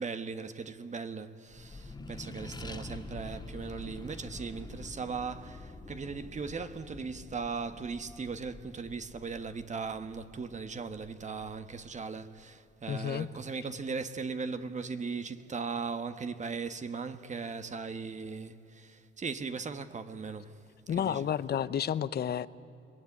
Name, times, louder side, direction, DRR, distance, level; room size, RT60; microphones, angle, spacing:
voice 1, 0.0-20.6 20.9-21.3, right 4 dB, 35° right, 1.3 m, -38 dB
Accelerating revving vroom, 1.5-12.4, left 2 dB, 20° left, 2.0 m, -47 dB
voice 2, 12.9-13.3 20.9-22.5, left 9 dB, 55° left, 0.8 m, -31 dB
28.5 x 20.5 x 9.7 m
cardioid pair, 90°, 20 cm